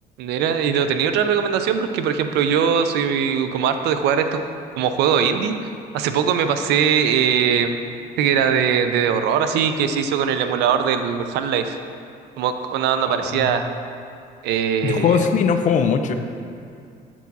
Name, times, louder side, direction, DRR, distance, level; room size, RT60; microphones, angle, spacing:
voice 1, 0.2-4.4 4.8-5.6 5.9-7.8 8.2-11.8 12.4-13.7 14.4-15.2, right 7 dB, 85° right, 8 dB, 0.5 m, -21 dB
voice 2, 13.1-13.5 14.8-16.1, left 6 dB, 50° left, 7 dB, 0.5 m, -20 dB
7.1 x 4.6 x 4.0 m, 2.4 s
cardioid pair, 110°, 17 cm